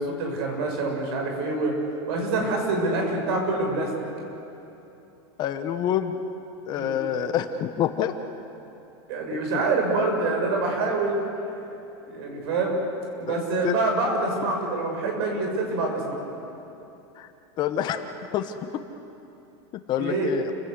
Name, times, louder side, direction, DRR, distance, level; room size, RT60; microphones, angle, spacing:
voice 1, 0.0-1.7 2.1-3.9 6.8-7.0 9.1-11.2 12.0-12.8 13.2-16.2 20.0-20.3, right 3 dB, 65° right, 2 dB, 7.0 m, -26 dB
voice 2, 5.4-6.2 6.7-8.1 13.3-13.4 13.6-13.7 17.2-17.3 17.6-18.0 18.3-18.5 19.9-20.5, left 10 dB, 30° left, 8 dB, 1.1 m, -26 dB
29.5 x 17.5 x 8.2 m, 3.0 s
supercardioid pair, 160°, 14 cm